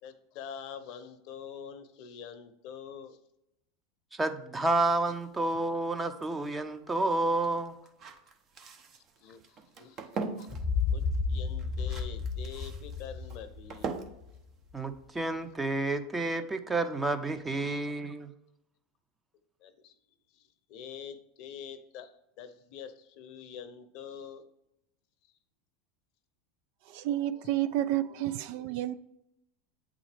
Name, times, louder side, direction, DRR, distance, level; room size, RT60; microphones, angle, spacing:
voice 1, 0.0-3.2 5.5-5.6 9.2-10.1 10.4-10.5 10.9-11.0 11.3-13.9 19.6-19.9 20.3-22.1 22.4-24.4, left 7 dB, 60° left, 0.7 m, -45 dB
voice 2, 4.2-7.8 14.7-18.3, right 2 dB, 15° right, 0.7 m, -30 dB
sound 1, 4.7-15.6, right 4 dB, 40° right, 0.9 m, -43 dB
sound 2, 10.5-14.4, left 5 dB, 25° left, 0.7 m, -32 dB
voice 3, 26.9-29.0, right 13 dB, 65° right, 0.3 m, -30 dB
8.1 x 3.7 x 3.3 m
hypercardioid pair, 95°, 0 cm